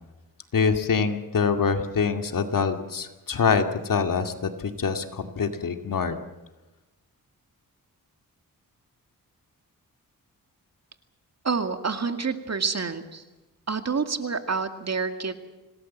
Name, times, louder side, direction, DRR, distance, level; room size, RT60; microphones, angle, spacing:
voice 1, 0.5-6.2, left 5 dB, 65° left, 6 dB, 2.4 m, -25 dB
voice 2, 11.4-13.2 13.7-15.3, right 5 dB, 50° right, 7 dB, 2.3 m, -28 dB
26.5 x 18.5 x 7.5 m, 1.1 s
cardioid pair, 80°, 35 cm